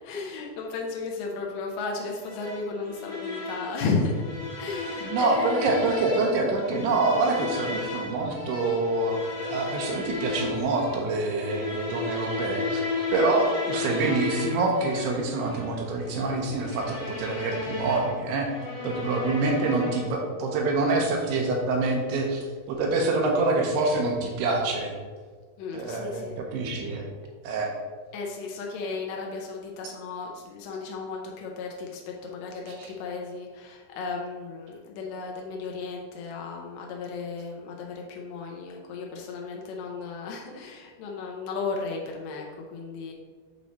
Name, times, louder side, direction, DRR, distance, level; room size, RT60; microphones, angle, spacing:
voice 1, 0.0-4.2 4.6-5.8 25.6-26.7 28.1-43.1, left 4 dB, 85° left, 0 dB, 1.9 m, -34 dB
sound 1, 2.2-20.2, left 3 dB, 65° left, 1.2 m, -34 dB
voice 2, 5.0-12.8 13.1-18.5 18.8-24.9 25.7-27.1 27.4-27.7 32.8-32.9, right 3 dB, 80° right, 0 dB, 2.7 m, -26 dB
8.1 x 3.1 x 4.0 m, 1.5 s
omnidirectional pair, 4.7 m